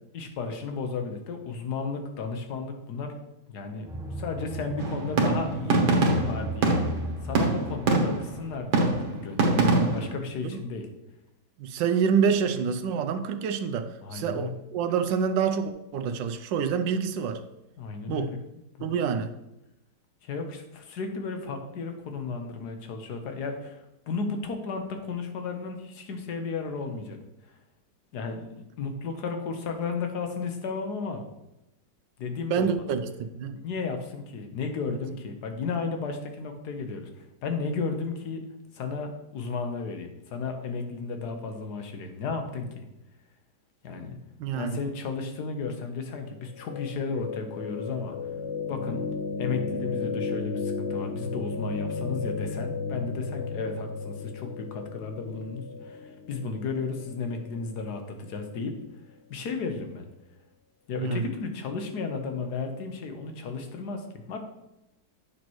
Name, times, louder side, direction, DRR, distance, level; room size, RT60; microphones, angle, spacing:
voice 1, 0.1-3.2 3.5-3.9 4.2-6.8 7.2-10.9 14.0-14.5 17.8-18.4 18.8-18.9 20.2-27.2 27.5-27.6 28.1-31.2 32.2-32.8 33.5-38.4 38.7-42.8 43.8-44.2 44.5-48.2 48.7-49.0 49.4-58.8 59.3-60.1 60.9-64.4, left 4 dB, 65° left, 5 dB, 1.5 m, -34 dB
sound 1, 3.9-8.9, right 1 dB, 5° right, 0.3 m, -37 dB
sound 2, 4.8-8.4 8.7-10.2, right 2 dB, 65° right, 1.7 m, -24 dB
voice 2, 11.6-17.4 18.1-18.3 18.8-19.3 32.5-33.5 44.4-44.8 61.0-61.3, right 6 dB, 80° right, 8 dB, 1.3 m, -27 dB
sound 3, 46.5-58.6, left 4 dB, 90° left, 0.6 m, -34 dB
8.6 x 6.3 x 3.0 m, 0.90 s
omnidirectional pair, 2.0 m